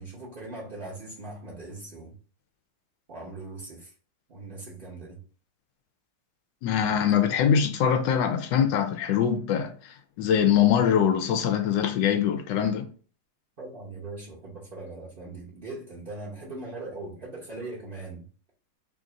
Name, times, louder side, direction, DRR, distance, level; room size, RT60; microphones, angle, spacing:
voice 1, 0.0-2.2 3.1-3.9 4.3-5.2 13.6-18.3, right 2 dB, 40° right, 0.8 m, -40 dB
voice 2, 6.6-12.8, left 8 dB, 80° left, 1.3 m, -23 dB
3.5 x 2.5 x 3.8 m
omnidirectional pair, 2.0 m